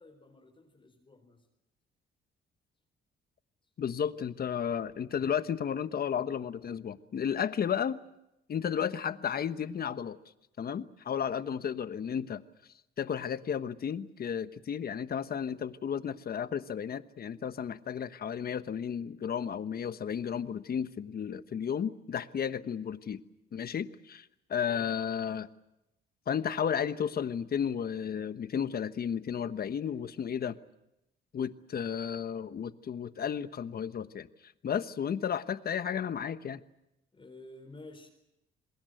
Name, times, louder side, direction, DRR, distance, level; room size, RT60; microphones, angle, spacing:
voice 1, 0.0-1.5 37.1-38.1, left 2 dB, 25° left, 3 dB, 4.4 m, -52 dB
voice 2, 3.8-8.0 8.5-10.2 10.6-12.4 13.0-23.2 23.5-25.5 26.3-30.6 31.3-36.6, left 8 dB, 50° left, 12 dB, 1.2 m, -33 dB
28.0 x 20.5 x 8.0 m, 0.88 s
cardioid pair, 90°, 20 cm